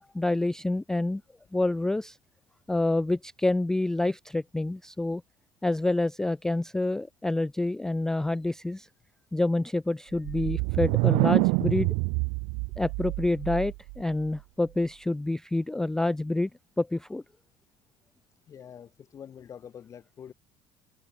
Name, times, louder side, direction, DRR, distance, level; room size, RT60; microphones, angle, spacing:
voice 1, 0.1-1.2 1.5-2.2 2.7-5.2 5.6-8.9 9.3-11.9 12.8-16.5 16.8-17.2, left 2 dB, 5° left, 0.3 m, -27 dB
sound 1, 10.1-14.0, right 35 dB, 85° right, 0.7 m, -26 dB
voice 2, 18.5-20.3, left 8 dB, 30° left, 5.2 m, -45 dB
cardioid pair, 175°, 12 cm